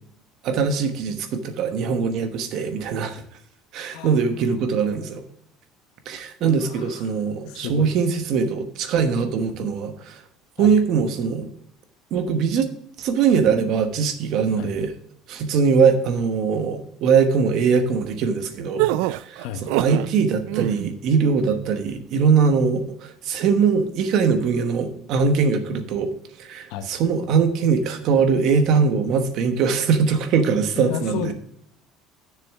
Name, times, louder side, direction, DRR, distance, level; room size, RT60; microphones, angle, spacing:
voice 1, 0.4-3.2 3.7-5.2 6.1-10.2 10.6-11.5 12.1-12.7 13.0-14.9 15.3-18.9 19.2-19.4 19.7-26.1 26.4-31.3, right 5 dB, 50° right, 7 dB, 1.1 m, -21 dB
voice 2, 4.8-5.2 6.4-7.1 7.5-7.9 10.6-10.7 14.6-14.7 19.4-19.6 26.7-26.9 30.8-31.3, left 7 dB, 70° left, 9 dB, 0.9 m, -32 dB
sound 1, 18.8-20.1 20.5-20.9, right 16 dB, 80° right, 0.3 m, -24 dB
10.0 x 6.9 x 3.5 m, 0.70 s
cardioid pair, 175°, 0 cm